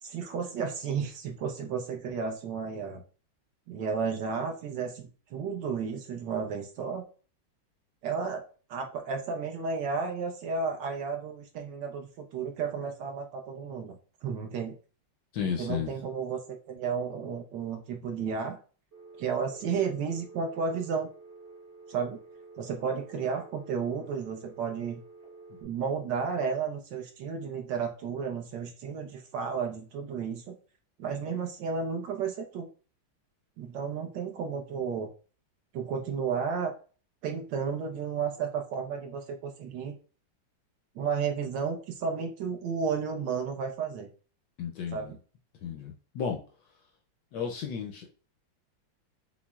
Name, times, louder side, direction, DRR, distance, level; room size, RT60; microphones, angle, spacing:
voice 1, 0.0-3.0 3.7-7.0 8.0-8.4 8.7-14.7 15.6-18.6 19.2-21.1 21.9-22.2 22.6-25.0 25.6-30.5 31.0-32.7 33.6-35.1 35.7-36.7 37.2-40.0 40.9-44.1 44.9-45.2, right 6 dB, 75° right, 3 dB, 1.1 m, -33 dB
voice 2, 15.3-15.9 44.6-45.1 45.6-46.4 47.3-48.1, left 7 dB, 75° left, 2 dB, 1.0 m, -33 dB
Telephone, 18.9-25.6, right 3 dB, 45° right, 0.7 m, -50 dB
5.9 x 2.0 x 2.3 m, 0.38 s
omnidirectional pair, 2.2 m